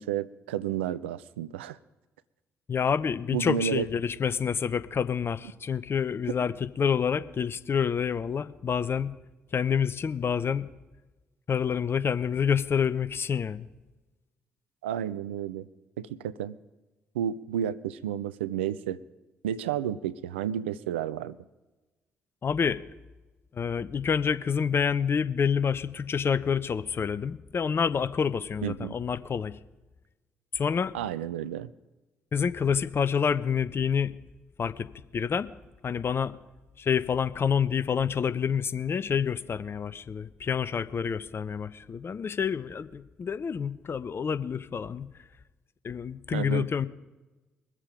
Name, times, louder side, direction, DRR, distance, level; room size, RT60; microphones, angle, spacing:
voice 1, 0.0-1.8 3.3-3.9 14.8-15.7 16.0-16.6 17.1-19.0 19.4-21.4 28.6-28.9 30.9-31.7 46.3-46.7, right 10 dB, 85° right, 16 dB, 0.4 m, -31 dB
voice 2, 2.7-9.1 9.5-10.7 11.5-13.7 22.4-22.8 23.5-29.6 30.5-30.9 32.3-34.2 34.6-35.5 35.8-36.4 36.8-45.1 45.8-46.9, left 7 dB, 40° left, 15 dB, 0.7 m, -28 dB
22.5 x 7.5 x 5.1 m, 1.1 s
hypercardioid pair, 45°, 6 cm